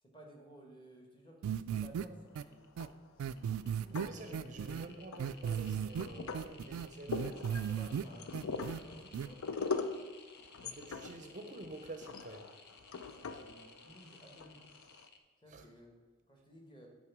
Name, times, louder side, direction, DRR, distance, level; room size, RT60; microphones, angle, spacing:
voice 1, 0.0-2.7 3.2-4.3 7.0-9.4 13.1-14.7 15.4-16.9, right 1 dB, 25° left, 0 dB, 1.3 m, -57 dB
sound 1, 1.4-2.0 2.4-2.5 2.8-2.9 3.2-4.9 5.2-6.1 6.3-8.0 8.3-8.8 9.1-9.3, right 8 dB, 90° right, 0.3 m, -36 dB
sound 2, 1.8-2.0 2.3-2.9 3.3-15.2, left 4 dB, 55° left, 0.7 m, -59 dB
sound 3, 2.6-3.3 3.7-4.7 5.1-15.0, left 4 dB, 85° left, 0.5 m, -42 dB
voice 2, 3.9-7.5 10.6-12.5 15.5-15.6, right 2 dB, 35° right, 6 dB, 0.5 m, -48 dB
8.8 x 4.2 x 5.9 m, 1.4 s
head